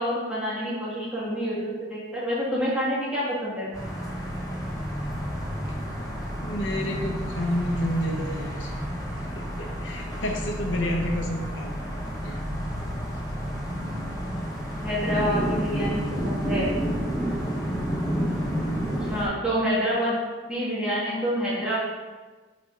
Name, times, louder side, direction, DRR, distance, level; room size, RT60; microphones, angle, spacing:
voice 1, 0.0-3.7 14.8-16.7 19.1-20.2 20.5-21.8, equal, 5° right, -8 dB, 1.8 m, -27 dB
sound 1, 3.7-19.3, equal, 20° left, 1.3 m, -30 dB
voice 2, 6.4-8.7 9.6-12.0 12.2-12.6 18.4-19.0, left 1 dB, 85° left, 1 dB, 1.0 m, -30 dB
8.6 x 3.4 x 3.8 m, 1.3 s
head